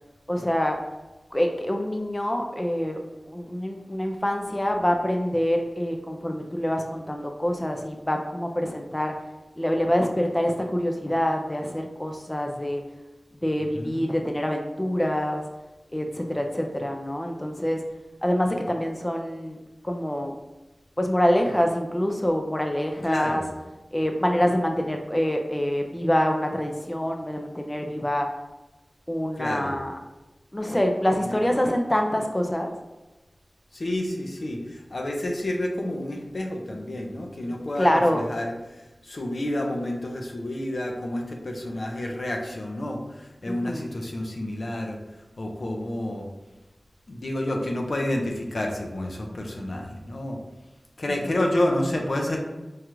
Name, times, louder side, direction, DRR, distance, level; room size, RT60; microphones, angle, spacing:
voice 1, 0.3-0.8 1.3-3.0 3.3-9.1 9.6-12.8 13.4-15.4 15.9-17.8 18.2-19.6 19.8-20.3 21.0-23.4 23.9-28.3 29.1-29.9 30.5-32.7 37.8-38.3 43.5-43.9 51.2-51.4, equal, 20° left, 3 dB, 0.4 m, -25 dB
voice 2, 13.7-14.1 23.0-23.5 29.4-29.7 31.2-31.4 33.7-38.5 39.0-45.0 45.4-46.3 47.1-50.4 51.0-52.4, left 1 dB, 70° left, 1 dB, 0.6 m, -29 dB
4.7 x 2.4 x 3.0 m, 1.1 s
cardioid pair, 40°, 0 cm